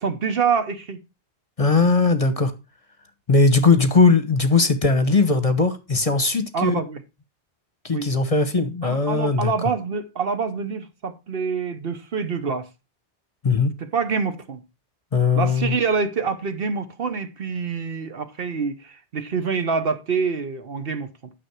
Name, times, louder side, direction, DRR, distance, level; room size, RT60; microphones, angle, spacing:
voice 1, 0.0-1.0 6.5-7.0 7.9-8.1 8.8-12.7 13.8-14.6 15.4-21.3, right 5 dB, 60° right, 1.1 m, -26 dB
voice 2, 1.6-2.5 3.3-6.7 7.8-9.5 13.4-13.7 15.1-15.7, left 4 dB, 35° left, 1.0 m, -19 dB
9.5 x 6.1 x 4.6 m
omnidirectional pair, 1.1 m